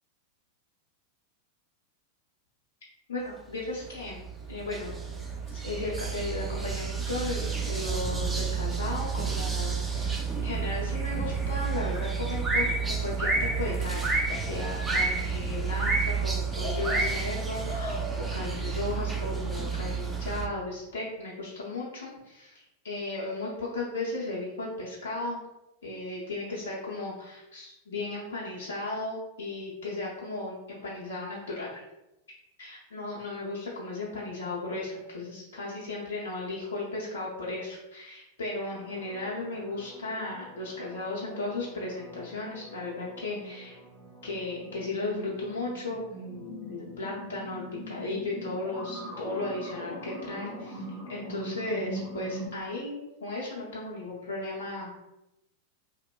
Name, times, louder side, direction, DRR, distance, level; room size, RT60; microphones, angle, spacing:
voice 1, 3.1-4.2 4.5-5.0 5.5-25.4 25.8-31.8 32.6-43.8 44.2-54.9, left 2 dB, 65° left, -5 dB, 0.5 m, -35 dB
sound 1, 3.8-20.5, right 4 dB, 15° right, 0.4 m, -30 dB
sound 2, 38.7-52.5, right 1 dB, 5° left, 0.9 m, -42 dB
2.9 x 2.0 x 2.3 m, 0.92 s
figure-of-eight pair, 90°, 0 cm